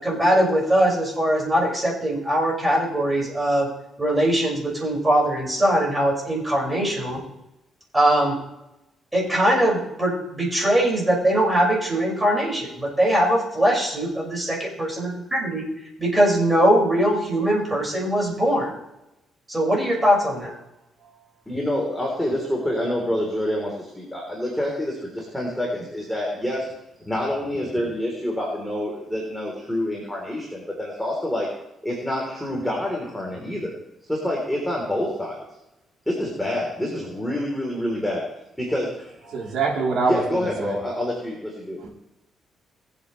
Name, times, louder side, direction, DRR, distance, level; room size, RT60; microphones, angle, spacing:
voice 1, 0.0-3.7 4.0-7.2 7.9-8.3 9.1-15.6 16.0-18.7 19.5-20.5, right 1 dB, 15° right, -2 dB, 5.7 m, -21 dB
voice 2, 21.5-26.6 27.0-31.5 31.8-33.8 34.1-35.4 36.1-38.2 38.6-39.1 39.4-39.5 40.0-41.9, left 1 dB, 5° left, -2 dB, 3.6 m, -27 dB
voice 3, 39.3-40.8 41.8-41.9, right 4 dB, 65° right, -4 dB, 3.4 m, -24 dB
22.0 x 8.3 x 3.3 m, 0.93 s
cardioid pair, 90°, 0 cm